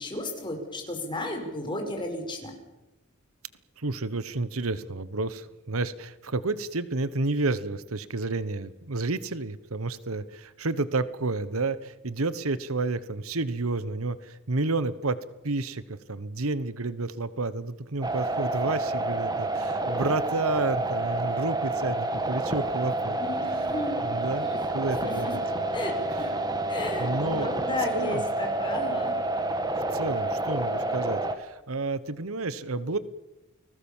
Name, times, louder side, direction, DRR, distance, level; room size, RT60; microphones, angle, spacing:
voice 1, 0.0-2.5 23.2-23.9 24.4-24.6 25.0-25.3 25.7-25.9 26.2-26.3 26.7-29.2, left 1 dB, 20° left, 3 dB, 6.0 m, -34 dB
voice 2, 3.8-15.2 15.4-23.2 24.0-25.4 27.0-27.5 27.9-28.2 29.9-33.0, right 3 dB, 75° right, 15 dB, 1.1 m, -30 dB
sound 1, 18.0-31.4, right 2 dB, 20° right, 2.0 m, -29 dB
30.0 x 20.0 x 7.3 m, 0.99 s
head